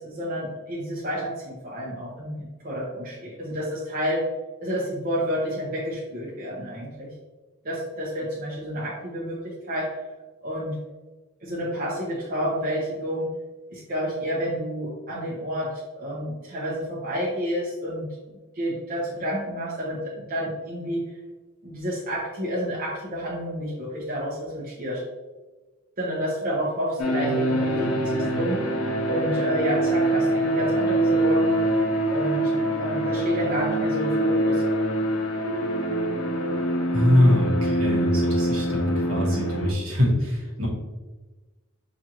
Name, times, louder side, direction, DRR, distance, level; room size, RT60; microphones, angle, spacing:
voice 1, 0.0-4.2 4.6-7.1 7.6-10.0 10.4-10.8 11.4-13.3 13.7-18.1 18.5-21.1 21.6-25.0 26.0-28.6 29.1-31.6 32.1-32.5 32.8-34.6, equal, 40° right, -6 dB, 0.8 m, -30 dB
sound 1, 27.0-39.7, right 1 dB, 75° left, 0.6 m, -24 dB
voice 2, 36.9-40.7, left 1 dB, 65° right, -3 dB, 1.3 m, -23 dB
6.0 x 2.5 x 2.9 m, 1.2 s
head